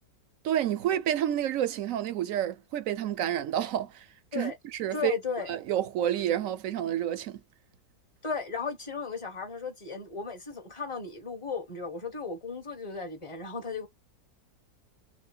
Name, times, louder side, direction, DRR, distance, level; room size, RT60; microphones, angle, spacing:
voice 1, 0.4-4.0 4.3-5.1 5.5-7.4, right 11 dB, 65° right, 0.8 m, -29 dB
voice 2, 4.9-5.5 8.2-13.9, left 5 dB, 20° left, 1.1 m, -35 dB
6.1 x 2.2 x 2.3 m
omnidirectional pair, 1.8 m